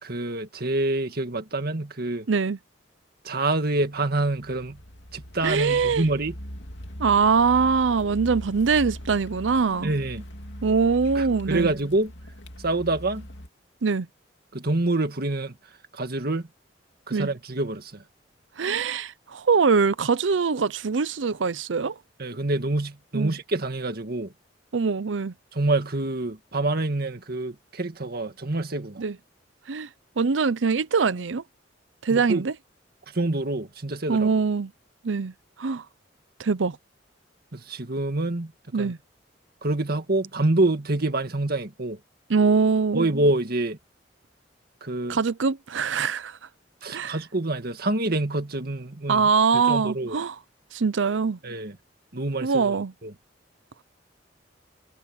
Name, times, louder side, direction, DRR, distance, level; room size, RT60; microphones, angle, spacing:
voice 1, 0.0-2.3 3.2-4.8 5.1-6.3 9.8-10.2 11.2-12.1 12.6-13.3 14.5-15.5 15.9-16.5 17.1-17.9 22.2-24.3 25.5-29.0 32.1-32.5 33.1-34.3 37.5-38.5 38.8-38.9 39.6-42.0 42.9-43.8 44.8-45.2 46.8-50.2 51.4-51.8 52.1-52.8 53.0-53.1, right 2 dB, 55° right, 2.0 m, -26 dB
voice 2, 2.3-2.6 5.4-6.0 7.0-9.9 10.6-11.7 13.8-14.1 17.1-17.3 18.6-22.0 23.1-23.4 24.7-25.3 29.0-29.2 29.7-29.9 30.2-31.4 32.0-32.5 34.1-34.7 35.0-35.3 35.6-35.8 36.4-36.8 38.7-39.0 42.3-43.0 45.1-46.4 46.9-47.2 49.1-50.4 50.7-51.4 52.4-52.9, right 5 dB, 85° right, 0.6 m, -23 dB
Car, 4.1-13.5, equal, 70° left, 2.8 m, -40 dB
head